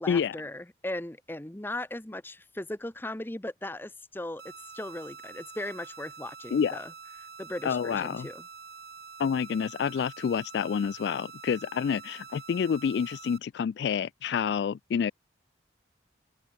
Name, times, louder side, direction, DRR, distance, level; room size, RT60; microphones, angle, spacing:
voice 1, 0.0-4.4 4.7-6.9 7.2-8.5, left 1 dB, 10° left, 0.8 m, -38 dB
sound 1, 4.4-13.4, right 5 dB, 55° right, 3.1 m, -47 dB
voice 2, 7.6-8.3 9.2-15.1, left 7 dB, 70° left, 0.3 m, -28 dB
open air
head